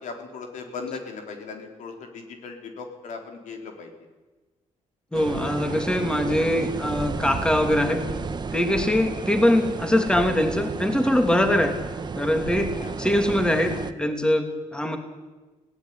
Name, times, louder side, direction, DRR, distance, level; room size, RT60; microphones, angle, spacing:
voice 1, 0.0-3.9 8.9-9.1 12.8-13.0, left 4 dB, 80° left, 4 dB, 4.2 m, -38 dB
voice 2, 5.1-8.0 8.5-11.7 12.2-15.0, left 1 dB, 5° left, 5 dB, 2.9 m, -22 dB
sound 1, 5.1-13.9, right 5 dB, 35° right, 1.4 m, -32 dB
20.0 x 17.0 x 9.8 m, 1.2 s
cardioid pair, 100°, 13 cm